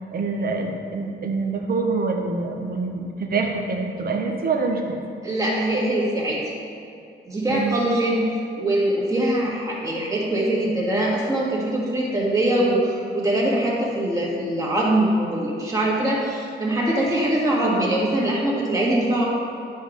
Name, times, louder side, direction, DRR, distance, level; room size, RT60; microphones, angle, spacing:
voice 1, 0.1-5.0 7.5-7.7, right 4 dB, 55° right, 2 dB, 0.9 m, -25 dB
voice 2, 5.2-6.4 7.3-8.3 8.6-19.2, right 1 dB, 20° right, -6 dB, 1.8 m, -22 dB
11.0 x 3.7 x 5.1 m, 2.6 s
wide cardioid pair, 160°, 19 cm